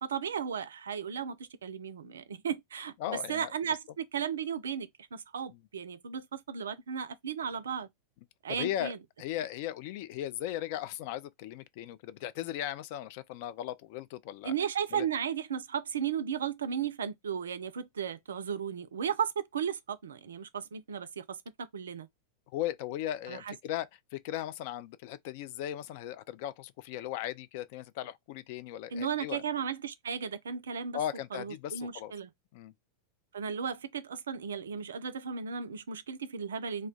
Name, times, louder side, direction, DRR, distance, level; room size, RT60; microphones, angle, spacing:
voice 1, 0.0-7.9 8.4-9.0 14.4-22.1 23.3-23.5 28.9-31.0 31.3-32.3 33.3-36.9, right 7 dB, 65° right, 0.4 m, -35 dB
voice 2, 3.0-3.5 5.5-5.6 8.5-14.5 14.9-15.1 22.5-29.4 30.9-32.1 32.5-32.7, left 12 dB, 50° left, 0.3 m, -37 dB
2.2 x 2.1 x 3.7 m
figure-of-eight pair, 90°, 0 cm